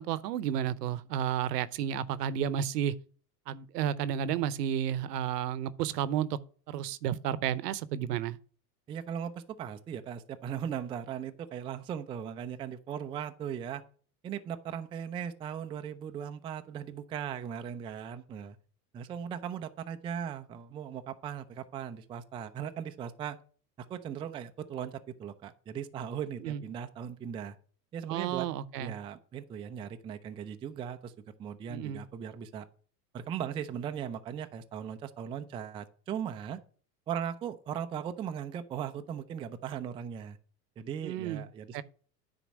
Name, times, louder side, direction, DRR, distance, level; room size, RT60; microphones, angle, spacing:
voice 1, 0.0-3.0 3.5-6.4 6.7-8.4 26.4-26.6 28.1-29.0 31.7-32.0 41.0-41.4 41.7-41.8, right 10 dB, 70° right, 0.8 m, -32 dB
voice 2, 8.9-13.8 14.2-18.6 18.9-23.4 23.9-27.6 27.9-28.5 28.8-31.1 31.4-32.7 33.1-36.6 37.1-40.4 40.8-41.8, right 8 dB, 10° right, 0.3 m, -38 dB
9.9 x 4.3 x 6.1 m
hypercardioid pair, 90°, 49 cm